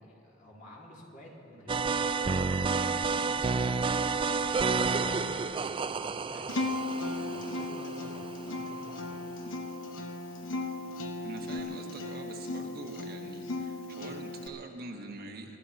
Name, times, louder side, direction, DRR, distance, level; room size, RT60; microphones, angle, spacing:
voice 1, 0.0-6.7 7.0-9.2, equal, 45° left, -4 dB, 3.0 m, -51 dB
sound 1, 1.7-8.9, right 4 dB, 25° right, 0.3 m, -30 dB
Acoustic guitar, 6.5-14.5, left 2 dB, 75° left, 1.0 m, -36 dB
voice 2, 11.2-15.6, right 2 dB, 50° right, 3 dB, 1.2 m, -44 dB
25.5 x 12.0 x 4.1 m, 2.8 s
head